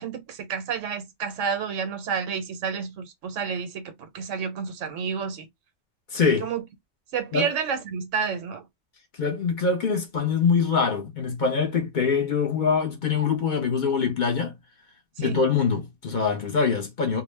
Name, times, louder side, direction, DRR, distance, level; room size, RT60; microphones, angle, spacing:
voice 1, 0.0-5.5 6.4-6.6 7.1-8.6 15.2-15.4, right 6 dB, 90° right, 1.1 m, -30 dB
voice 2, 6.1-6.5 7.3-7.5 9.2-14.5 15.2-17.2, left 5 dB, 50° left, 0.7 m, -24 dB
2.3 x 2.1 x 3.2 m
omnidirectional pair, 1.2 m